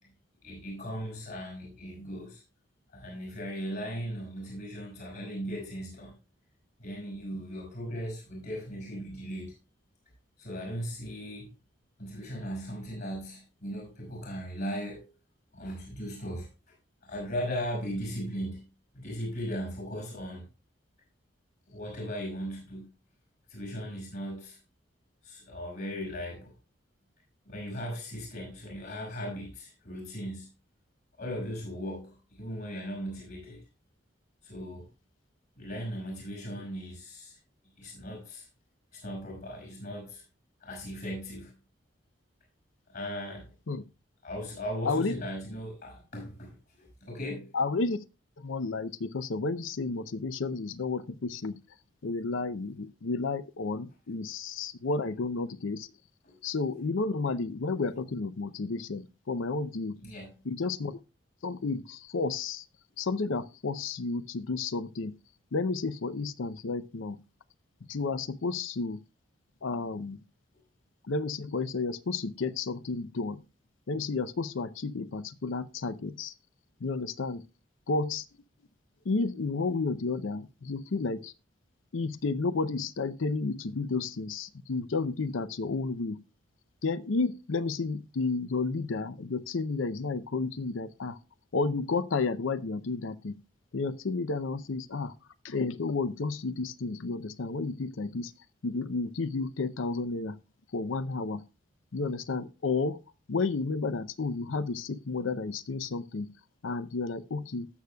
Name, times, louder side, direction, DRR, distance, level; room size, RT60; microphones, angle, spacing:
voice 1, 0.4-2.4 2.9-6.2 6.8-9.5 10.4-11.5 12.0-15.1 15.5-16.7 17.0-18.7 18.9-20.5 21.7-22.9 23.5-24.6 25.2-26.5 27.4-30.5 31.2-33.7 34.4-34.9 35.6-37.4 37.8-38.5 38.9-40.2 40.6-41.5 42.9-43.5 44.2-47.5 56.2-56.4 60.0-60.3, equal, 60° left, 5.7 m, -38 dB
voice 2, 47.5-48.0 48.4-51.6 52.0-55.9 56.4-60.0 60.5-61.0 61.4-62.6 63.0-65.2 65.5-67.2 67.9-69.0 69.6-70.2 71.1-73.4 73.9-76.3 76.8-77.4 77.9-78.3 79.0-81.3 81.9-86.2 86.8-91.2 91.5-93.4 93.7-95.1 95.4-98.3 98.6-100.4 100.7-101.4 101.9-103.0 103.3-106.3 106.6-107.7, left 3 dB, 90° left, 0.6 m, -31 dB
18.5 x 6.6 x 2.3 m
head